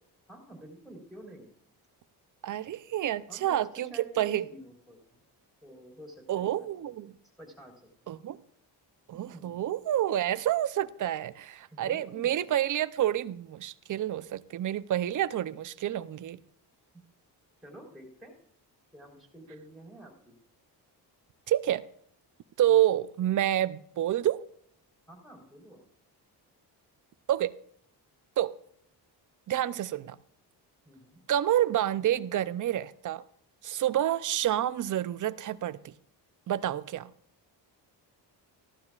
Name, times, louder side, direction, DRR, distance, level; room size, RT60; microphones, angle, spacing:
voice 1, 0.3-1.5 3.3-5.2 5.6-6.9 7.4-7.9 9.1-9.6 11.7-12.3 12.6-12.8 17.6-18.3 18.9-20.4 25.1-25.9 30.8-31.2, equal, ahead, 4.0 m, -49 dB
voice 2, 2.4-4.4 6.3-7.1 8.1-8.4 9.1-16.4 21.5-21.9 22.6-24.4 27.3-27.6 28.4-28.6 29.5-30.2 31.3-33.2 33.6-35.9 36.5-37.1, right 12 dB, 45° right, 0.6 m, -28 dB
16.0 x 12.0 x 2.4 m
cardioid pair, 100°, 42 cm